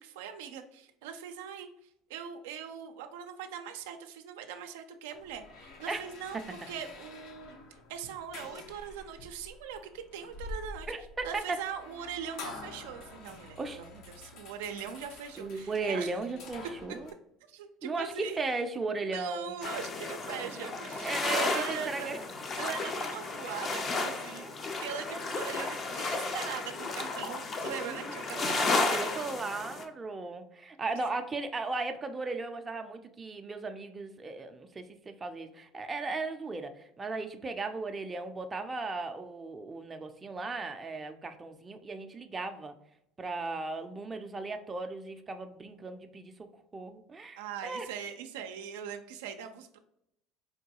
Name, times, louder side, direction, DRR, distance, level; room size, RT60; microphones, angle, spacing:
voice 1, 0.0-1.7 2.1-7.6 7.9-10.9 11.2-16.1 17.5-18.4 19.0-22.2 22.6-24.5 24.8-29.4 31.0-31.1 47.4-49.8, right 8 dB, 90° right, 6 dB, 0.4 m, -41 dB
sound 1, 5.1-17.1, left 3 dB, 65° left, 0.8 m, -48 dB
voice 2, 10.9-11.6 13.6-13.8 15.4-17.1 17.8-19.5 20.9-22.2 22.9-23.1 24.4-24.5 25.1-25.2 27.9-42.8 43.2-46.3 46.7-47.9, right 3 dB, 25° right, 6 dB, 0.4 m, -36 dB
sound 2, 19.6-29.8, left 3 dB, 35° left, 0.5 m, -33 dB
4.6 x 2.2 x 2.8 m, 0.77 s
supercardioid pair, 100°, 0 cm